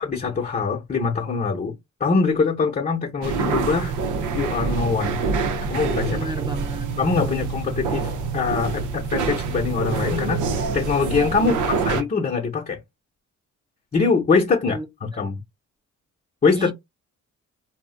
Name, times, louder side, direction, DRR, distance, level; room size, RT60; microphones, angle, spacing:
voice 1, 0.0-1.7 2.0-3.9 4.3-5.2 5.7-6.3 7.0-12.8 13.9-15.4 16.4-16.7, left 4 dB, 30° left, 0.8 m, -23 dB
sound 1, 3.2-12.0, right 4 dB, 80° right, 0.6 m, -26 dB
voice 2, 6.1-6.9 7.2-7.5 11.4-11.7 14.7-14.9 16.5-16.7, right 2 dB, 15° right, 0.6 m, -33 dB
2.4 x 2.1 x 3.7 m
cardioid pair, 90°, 30 cm